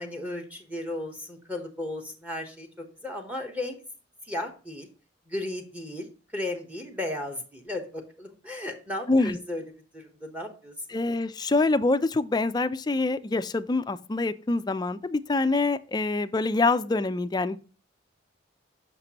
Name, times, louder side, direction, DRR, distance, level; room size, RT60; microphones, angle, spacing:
voice 1, 0.0-2.7 3.0-3.8 4.3-4.9 5.3-6.1 6.3-9.6 9.9-10.7, left 1 dB, 10° right, 1.0 m, -35 dB
voice 2, 9.1-9.4 10.9-17.6, left 3 dB, 20° left, 0.4 m, -25 dB
6.6 x 5.9 x 2.9 m
head